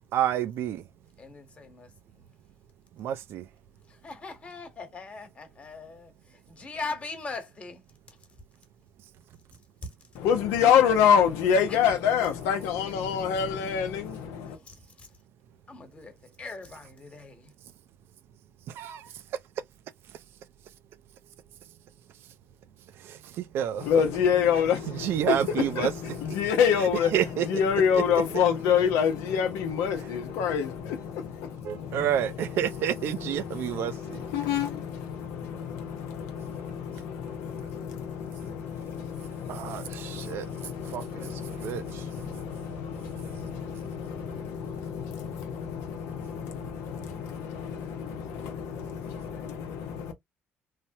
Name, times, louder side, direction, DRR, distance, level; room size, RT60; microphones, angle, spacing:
voice 1, 0.1-0.8 3.0-3.4 18.8-19.1 23.0-23.9 25.0-25.9 27.1-27.4 31.7-34.2 39.5-40.5 40.9-41.3 41.6-42.0, right 10 dB, 70° right, 0.4 m, -29 dB
voice 2, 1.2-2.3 3.9-7.8 8.1-8.4 9.8-9.9 11.7-11.8 14.5-15.2 15.7-17.5, left 3 dB, 30° left, 1.2 m, -41 dB
voice 3, 10.1-14.6 23.8-50.1, left 8 dB, 85° left, 0.7 m, -28 dB
3.2 x 2.1 x 2.7 m
supercardioid pair, 90°, 4 cm